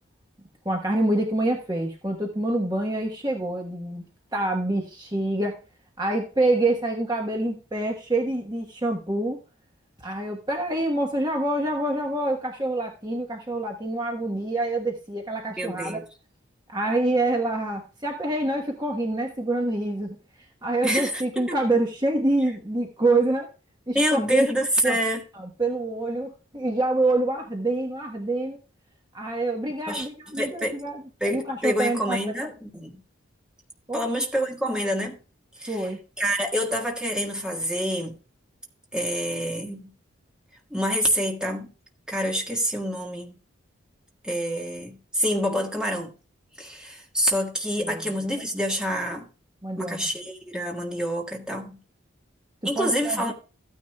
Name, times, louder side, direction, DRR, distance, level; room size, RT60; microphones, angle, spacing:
voice 1, 0.6-4.0 4.3-5.6 6.0-9.4 10.0-16.0 16.7-20.2 20.6-23.5 23.9-24.5 24.8-25.0 25.3-28.6 29.1-31.0 31.3-32.2 33.9-34.0 35.7-36.0 47.8-48.0 49.6-50.0 52.7-53.3, right 2 dB, 20° right, 1.2 m, -26 dB
voice 2, 15.6-16.0 20.8-21.6 23.9-25.2 29.9-30.1 30.3-30.8 31.2-33.0 33.9-35.2 35.6-35.9 36.2-38.2 38.9-39.9 40.7-41.7 42.1-43.3 44.2-46.1 46.6-49.3 49.8-51.8 52.6-53.3, equal, 5° right, 1.5 m, -27 dB
14.5 x 9.6 x 2.3 m
head